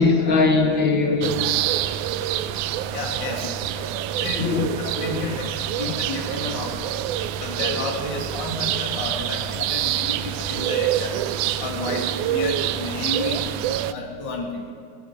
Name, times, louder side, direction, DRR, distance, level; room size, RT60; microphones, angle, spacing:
voice 1, 0.0-1.5 3.8-3.9 4.3-4.7 5.1-5.3, left 4 dB, 60° left, 4 dB, 1.3 m, -20 dB
sound 1, 1.2-13.9, right 11 dB, 85° right, 2.0 m, -26 dB
voice 2, 2.9-3.4 4.2-7.0 7.4-11.2 11.6-13.5 13.9-14.6, left 3 dB, 40° left, 0 dB, 2.4 m, -31 dB
20.0 x 10.0 x 5.8 m, 2.2 s
omnidirectional pair, 3.4 m